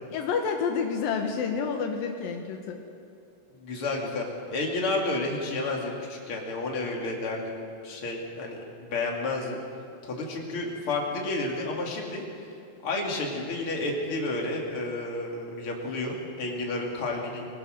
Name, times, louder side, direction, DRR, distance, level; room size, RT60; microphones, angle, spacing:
voice 1, 0.1-2.8, left 6 dB, 75° left, 3 dB, 3.0 m, -29 dB
voice 2, 3.6-9.6 10.0-12.2 12.8-17.5, left 2 dB, 40° left, -1 dB, 3.4 m, -31 dB
25.0 x 19.5 x 6.7 m, 2.5 s
omnidirectional pair, 4.1 m